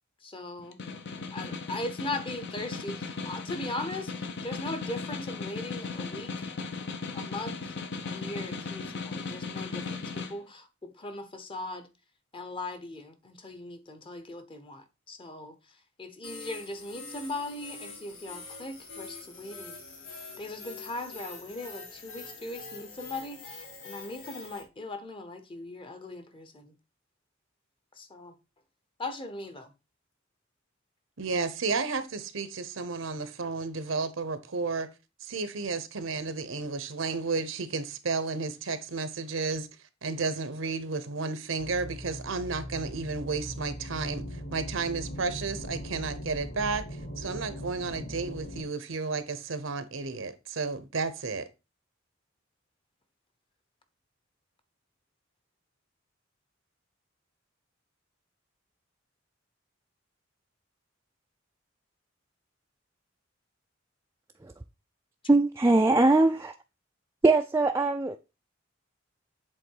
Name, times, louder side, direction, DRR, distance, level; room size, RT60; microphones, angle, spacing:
voice 1, 0.2-0.8 1.3-6.5 7.1-7.6 8.0-11.9 12.3-19.8 20.1-26.7 28.0-28.3 29.0-29.7 33.2-33.3, left 2 dB, 25° left, 0.9 m, -39 dB
Snare drum, 0.6-10.4, left 4 dB, 60° left, 0.8 m, -37 dB
sound 1, 16.2-24.6, left 3 dB, 85° left, 2.5 m, -45 dB
voice 2, 31.2-34.9 35.2-39.7 40.0-44.2 44.5-46.8 47.2-51.4, right 4 dB, 80° right, 0.9 m, -32 dB
sound 2, 41.6-48.6, equal, 45° left, 2.3 m, -40 dB
voice 3, 65.3-66.5 67.2-68.2, right 2 dB, 15° right, 0.3 m, -21 dB
7.8 x 3.7 x 4.6 m
head